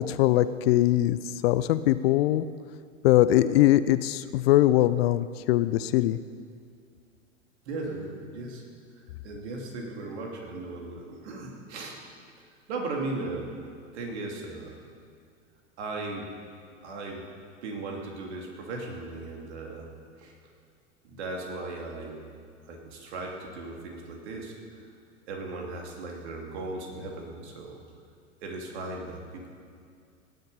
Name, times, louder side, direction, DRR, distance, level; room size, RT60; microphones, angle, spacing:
voice 1, 0.0-2.5 3.0-6.2, left 14 dB, 55° left, 14 dB, 0.6 m, -22 dB
voice 2, 7.7-8.6 9.0-12.0 12.7-13.6 13.9-14.8 15.8-16.3 16.8-17.2 17.6-19.9 20.2-20.3 21.0-22.2 22.6-24.9 25.3-27.8 28.4-29.5, right 2 dB, 65° right, 0 dB, 2.8 m, -37 dB
18.5 x 8.0 x 5.4 m, 2.2 s
hypercardioid pair, 95°, 37 cm